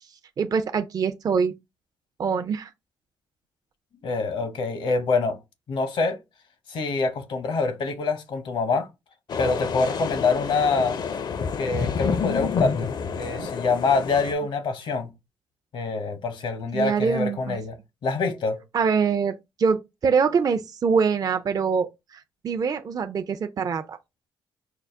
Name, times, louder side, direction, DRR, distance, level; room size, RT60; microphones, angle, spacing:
voice 1, 0.4-1.5 2.2-2.7 13.4-13.5 16.7-17.6 18.7-24.0, right 5 dB, 45° right, 0.4 m, -24 dB
voice 2, 4.0-5.4 5.7-6.2 6.7-8.9 9.4-11.0 11.6-15.1 15.7-17.8 18.0-18.6, left 4 dB, 70° left, 0.8 m, -25 dB
sound 1, 9.3-14.3, left 6 dB, 50° left, 0.5 m, -28 dB
4.7 x 2.1 x 3.4 m
supercardioid pair, 60°, 9 cm